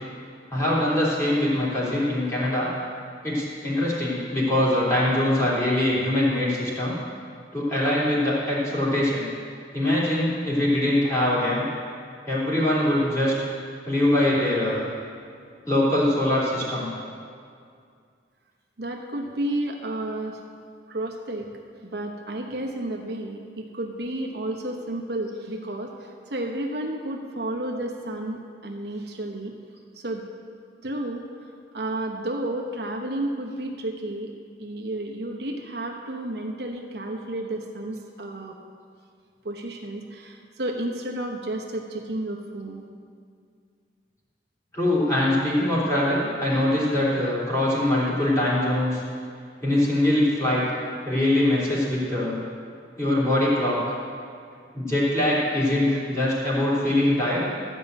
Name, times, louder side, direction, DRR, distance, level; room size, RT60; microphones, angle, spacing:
voice 1, 0.5-2.7 3.2-7.0 7.5-9.3 9.7-11.6 12.3-13.3 13.8-14.8 15.6-16.9 44.7-49.0 49.6-50.6 51.0-52.4 53.0-53.8 54.7-57.4, left 1 dB, 15° left, -8 dB, 3.0 m, -23 dB
voice 2, 18.8-20.4 20.9-21.5 21.8-29.5 29.9-30.2 30.8-31.3 31.7-34.3 34.6-38.6 39.4-42.8, right 1 dB, 65° right, 1 dB, 1.0 m, -31 dB
12.5 x 5.4 x 8.2 m, 2.3 s
head